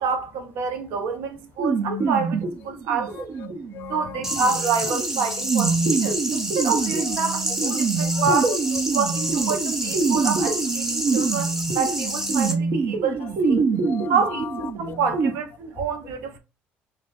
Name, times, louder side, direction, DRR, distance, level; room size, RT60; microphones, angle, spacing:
voice 1, 0.0-3.2 3.9-8.5 8.9-13.6 14.1-16.4, right 5 dB, 90° right, 0.8 m, -27 dB
sound 1, 1.6-15.3, right 4 dB, 60° right, 1.1 m, -26 dB
voice 2, 3.1-4.5 7.0-7.2 7.5-7.7 8.0-8.8 9.1-9.2 10.4-10.5 13.2-15.0 15.7-15.9, left 10 dB, 55° left, 0.4 m, -38 dB
sound 2, 4.2-12.5, right 1 dB, 10° right, 0.8 m, -28 dB
3.3 x 2.4 x 3.9 m
cardioid pair, 115°, 4 cm